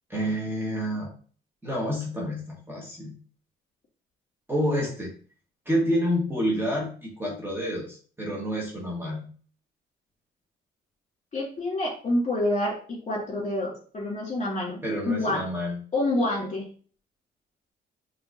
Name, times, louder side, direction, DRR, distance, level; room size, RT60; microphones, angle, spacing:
voice 1, 0.1-1.1 1.6-3.1 4.5-5.1 5.6-9.2 14.8-15.8, equal, 10° right, -3 dB, 1.6 m, -28 dB
voice 2, 11.3-15.4 15.9-16.7, left 1 dB, 35° left, -2 dB, 2.2 m, -27 dB
5.8 x 3.1 x 2.7 m, 0.42 s
cardioid pair, 90°, 20 cm